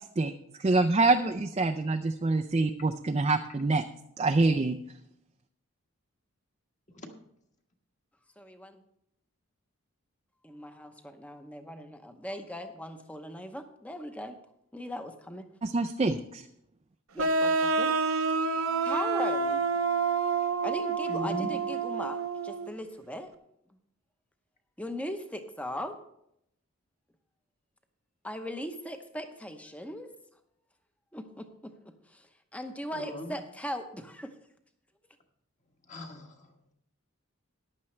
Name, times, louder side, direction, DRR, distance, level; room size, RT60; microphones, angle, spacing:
voice 1, 0.6-3.8 4.2-4.8 15.6-16.4, right 3 dB, 30° right, 6 dB, 0.4 m, -26 dB
voice 2, 8.4-8.8 10.4-14.4 14.7-15.5 17.1-18.0 18.8-19.6 20.6-23.3 24.8-25.9 28.2-30.1 31.1-31.7 32.1-34.3, equal, 5° left, 7 dB, 0.8 m, -39 dB
sound 1, 17.2-22.7, right 4 dB, 70° right, 0.8 m, -28 dB
voice 3, 21.1-21.5 32.9-33.4 35.8-36.7, left 1 dB, 35° left, 3 dB, 1.4 m, -39 dB
14.5 x 10.5 x 3.2 m, 0.77 s
head